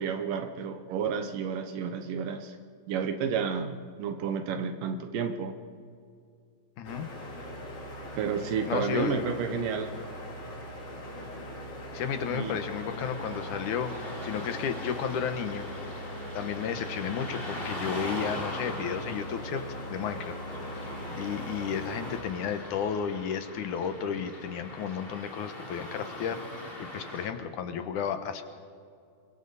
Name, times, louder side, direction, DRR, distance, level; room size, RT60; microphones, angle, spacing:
voice 1, 0.0-2.6 2.9-5.5 8.2-9.9 12.3-12.6, right 6 dB, 75° right, 7 dB, 2.7 m, -31 dB
voice 2, 6.8-7.1 8.7-9.3 11.9-13.9 14.2-15.7 16.3-19.6 19.9-20.3 20.6-26.4 26.8-28.4, left 7 dB, 70° left, 8 dB, 2.5 m, -33 dB
sound 1, 6.8-22.2, equal, 45° left, 4.6 m, -40 dB
Car passing by / Traffic noise roadway noise, 12.0-27.3, left 1 dB, 15° left, 3.5 m, -42 dB
28.5 x 24.0 x 4.1 m, 2.4 s
omnidirectional pair, 3.9 m